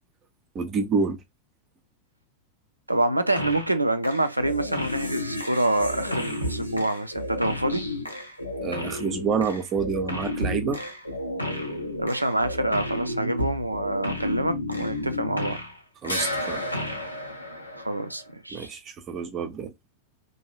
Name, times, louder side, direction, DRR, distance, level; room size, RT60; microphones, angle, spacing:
voice 1, 0.5-1.2 8.6-10.8 16.0-16.6 18.5-19.7, right 5 dB, 30° right, 0.6 m, -28 dB
voice 2, 2.9-7.8 12.0-15.6 17.8-18.7, right 1 dB, 85° right, 0.4 m, -26 dB
sound 1, 3.4-3.8 4.0-15.8 16.0-18.2, left 1 dB, 85° left, 0.7 m, -32 dB
2.6 x 2.2 x 3.1 m
figure-of-eight pair, 90°, 0 cm